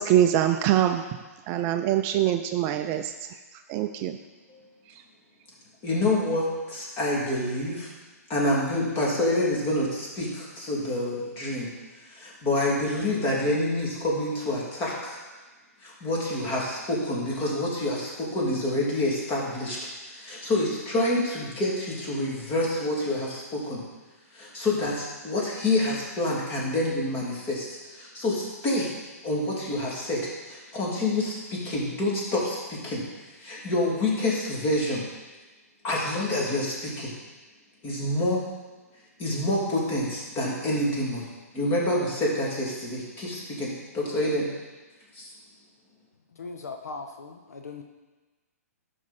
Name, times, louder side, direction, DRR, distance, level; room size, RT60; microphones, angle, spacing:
voice 1, 0.0-3.1 3.7-4.2, right 11 dB, 30° right, 7 dB, 0.4 m, -24 dB
voice 2, 5.8-7.9 8.3-11.7 12.0-15.2 15.8-23.8 24.3-28.9 29.2-33.0 33.4-35.0 35.8-37.1 37.8-38.4 39.2-41.3 41.5-44.5 45.1-45.3, left 1 dB, 25° left, -4 dB, 2.8 m, -27 dB
voice 3, 46.4-47.8, left 4 dB, 75° left, 4 dB, 0.9 m, -39 dB
12.0 x 5.4 x 4.3 m, 1.2 s
hypercardioid pair, 125°, 9 cm